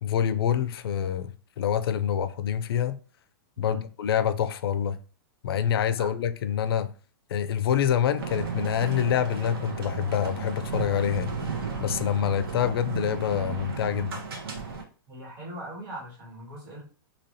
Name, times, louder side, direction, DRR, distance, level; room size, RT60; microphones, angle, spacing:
voice 1, 0.0-1.3 1.6-2.9 3.6-5.0 5.4-6.9 7.3-11.3 11.8-14.2, left 9 dB, 85° left, 0.4 m, -26 dB
sound 1, 8.2-14.8, right 5 dB, 80° right, 1.1 m, -34 dB
voice 2, 15.1-16.8, right 1 dB, 50° right, 1.7 m, -40 dB
3.1 x 2.8 x 2.6 m
supercardioid pair, 170°, 12 cm